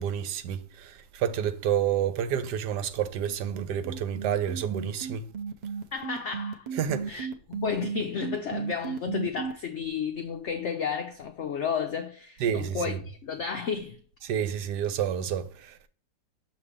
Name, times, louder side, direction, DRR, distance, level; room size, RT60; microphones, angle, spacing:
voice 1, 0.0-5.3 6.8-7.2 12.4-13.0 14.3-15.7, right 9 dB, 75° right, 1.2 m, -29 dB
sound 1, 3.2-9.5, right 6 dB, 60° right, 0.4 m, -34 dB
voice 2, 5.9-6.7 7.1-14.0, left 6 dB, 80° left, 0.6 m, -32 dB
6.4 x 3.0 x 4.8 m
omnidirectional pair, 1.9 m